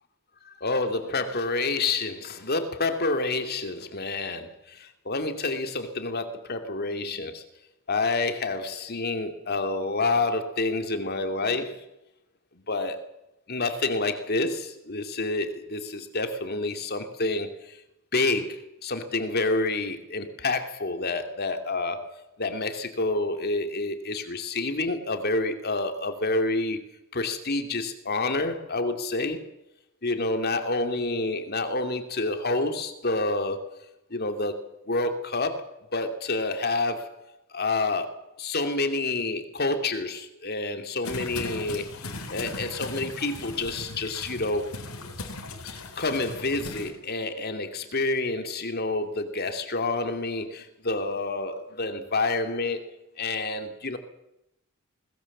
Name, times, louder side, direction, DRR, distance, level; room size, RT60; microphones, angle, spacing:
voice 1, 0.4-7.4 7.9-11.8 12.5-13.0 13.5-17.8 18.1-26.8 27.1-29.4 30.0-33.7 34.1-37.1 37.5-44.7 46.0-52.8 53.2-54.0, left 3 dB, 45° left, 7 dB, 2.6 m, -28 dB
sound 1, 41.0-46.9, left 3 dB, 75° left, 3.7 m, -38 dB
21.0 x 20.5 x 7.3 m, 0.86 s
head